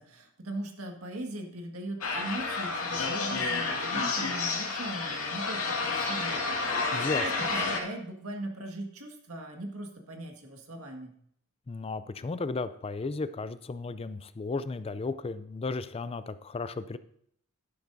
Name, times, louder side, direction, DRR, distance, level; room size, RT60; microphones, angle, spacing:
voice 1, 0.0-11.1, right 1 dB, 80° right, 3 dB, 1.8 m, -40 dB
sound 1, 2.0-7.8, left 3 dB, 90° left, 2.0 m, -30 dB
voice 2, 6.9-7.5 11.7-17.0, left 3 dB, 25° left, 13 dB, 0.4 m, -34 dB
11.5 x 10.5 x 2.6 m, 0.68 s
head